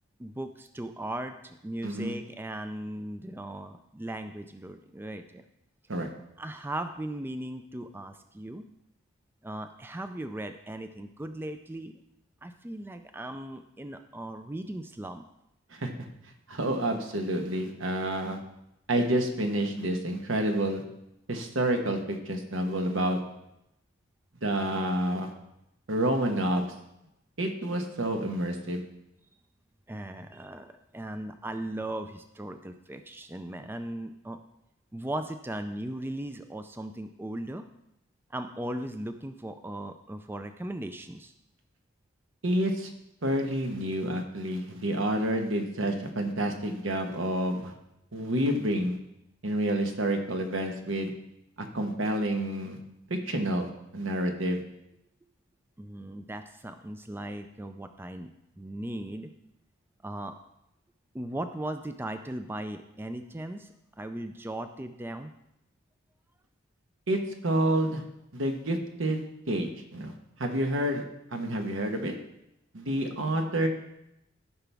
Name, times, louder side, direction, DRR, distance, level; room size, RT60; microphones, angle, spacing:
voice 1, 0.2-5.4 6.4-8.6 9.4-11.9 12.4-15.2 29.9-34.4 34.9-37.6 38.3-41.3 55.8-58.3 58.6-59.3 60.0-60.3 61.1-65.3, right 1 dB, 10° right, 8 dB, 0.4 m, -38 dB
voice 2, 1.8-2.1 5.9-6.1 15.8-15.9 16.5-18.4 18.9-20.8 21.3-23.2 24.4-25.3 25.9-26.7 27.4-28.8 42.4-42.9 43.2-47.7 48.1-49.0 49.4-51.1 51.6-52.8 53.1-53.7 53.9-54.6 67.1-68.0 68.3-70.1 70.4-71.0 71.3-72.1 72.7-73.7, right 1 dB, 80° right, 4 dB, 1.2 m, -29 dB
14.0 x 5.8 x 3.5 m, 0.85 s
head